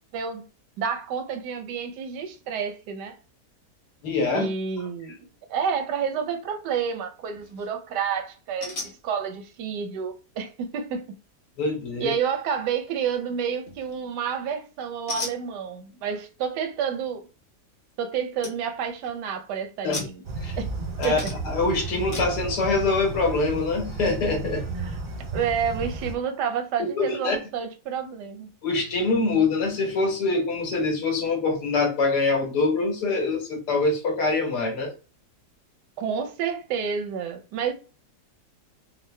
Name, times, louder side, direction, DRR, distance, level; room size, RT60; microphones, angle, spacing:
voice 1, 0.1-0.4 0.8-3.2 4.3-5.1 5.5-11.1 12.0-17.3 18.0-20.2 20.6-20.7 21.0-21.3 24.8-25.0 25.3-28.5 36.0-37.7, right 7 dB, 90° right, 1.2 m, -29 dB
voice 2, 4.0-4.5 11.6-12.1 19.8-20.0 20.4-20.6 21.0-24.6 26.8-27.4 28.6-34.9, left 3 dB, 85° left, 1.5 m, -24 dB
sound 1, 7.3-7.7 8.6-9.0 13.7-14.1 15.1-15.4 17.9-18.0 18.4-18.6 18.9-19.3 19.9-20.7 21.0-21.6 22.1-22.4, left 2 dB, 40° left, 1.0 m, -36 dB
sound 2, 20.2-26.1, right 3 dB, 50° right, 0.6 m, -33 dB
3.7 x 2.0 x 3.1 m
omnidirectional pair, 1.7 m